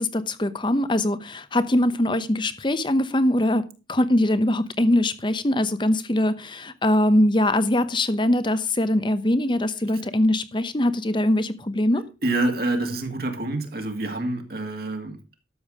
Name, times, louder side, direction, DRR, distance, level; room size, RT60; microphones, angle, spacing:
voice 1, 0.0-3.6 3.9-12.0, left 1 dB, 25° left, 0.9 m, -22 dB
voice 2, 11.9-15.2, right 2 dB, 50° right, 2.1 m, -27 dB
12.5 x 7.1 x 4.8 m
head